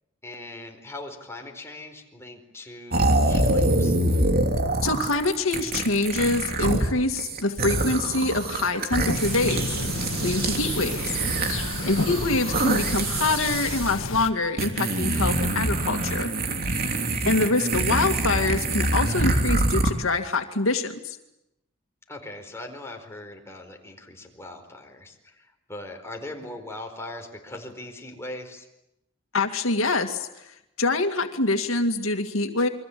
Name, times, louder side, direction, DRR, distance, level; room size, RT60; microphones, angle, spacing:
voice 1, 0.2-4.0 11.8-12.0 16.7-17.1 22.1-28.7, left 2 dB, 15° left, 3 dB, 4.5 m, -40 dB
sound 1, 2.9-6.9 7.2-13.9 14.6-19.9, right 2 dB, 50° right, 3.1 m, -25 dB
voice 2, 4.8-9.7 10.2-11.2 11.8-16.3 17.3-21.2 29.3-30.3 30.8-32.7, left 2 dB, 90° left, 6 dB, 2.2 m, -25 dB
sound 2, 9.1-14.3, left 3 dB, 75° left, 2.0 m, -32 dB
28.5 x 23.5 x 8.6 m, 0.88 s
head